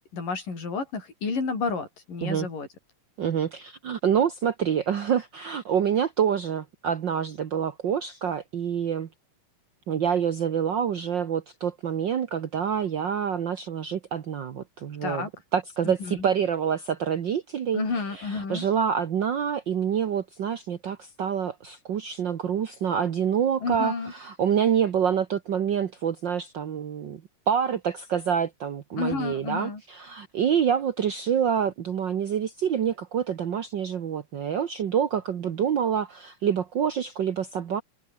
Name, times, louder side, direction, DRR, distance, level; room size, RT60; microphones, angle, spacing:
voice 1, 0.1-2.7 15.0-15.3 15.8-16.3 17.7-18.7 23.6-24.1 29.0-29.8, left 4 dB, 75° left, 8.3 m, -31 dB
voice 2, 3.2-9.1 9.9-15.2 15.5-17.8 18.2-27.2 27.5-37.8, right 8 dB, 65° right, 1.1 m, -27 dB
omnidirectional pair, 3.9 m